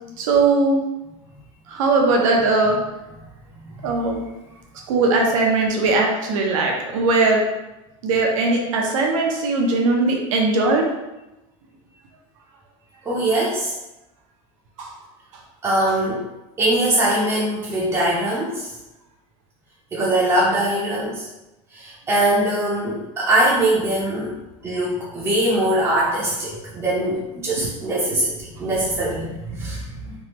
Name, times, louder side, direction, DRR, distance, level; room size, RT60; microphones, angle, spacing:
voice 1, 0.2-0.8 1.7-2.8 3.8-4.2 4.9-7.4 8.0-10.9 14.8-14.9, right 3 dB, 85° right, 0 dB, 0.8 m, -19 dB
voice 2, 3.1-4.0 13.0-13.8 15.6-16.2 16.6-18.7 19.9-21.3 21.7-24.4 24.6-30.1, right 1 dB, 15° right, -7 dB, 0.6 m, -22 dB
3.5 x 2.1 x 2.9 m, 0.98 s
supercardioid pair, 135°, 16 cm